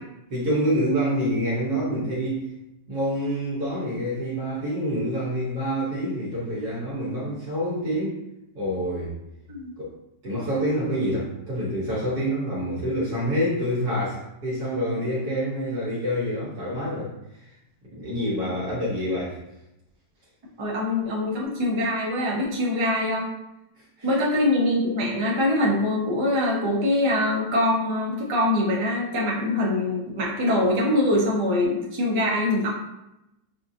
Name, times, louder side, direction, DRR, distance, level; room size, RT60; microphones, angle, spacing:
voice 1, 0.3-2.5 2.9-8.1 8.5-9.1 9.8-9.9 10.2-17.1 17.9-19.4 24.0-24.1, equal, 65° right, -7 dB, 1.5 m, -27 dB
voice 2, 20.6-23.3 24.0-32.7, left 1 dB, 30° right, -4 dB, 0.5 m, -23 dB
5.7 x 2.4 x 2.7 m, 0.88 s
omnidirectional pair, 1.9 m